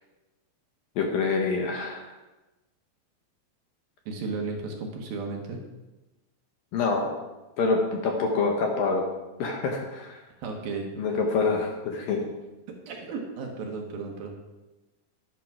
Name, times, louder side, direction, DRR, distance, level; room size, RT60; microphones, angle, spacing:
voice 1, 1.0-2.1 6.7-7.2 7.6-9.0 9.4-10.2 11.0-12.2, left 4 dB, 65° left, 1 dB, 2.5 m, -26 dB
voice 2, 4.1-5.6 10.4-11.0 12.9-14.3, right 4 dB, 65° right, 1 dB, 2.7 m, -34 dB
11.5 x 11.5 x 4.8 m, 1.1 s
omnidirectional pair, 5.1 m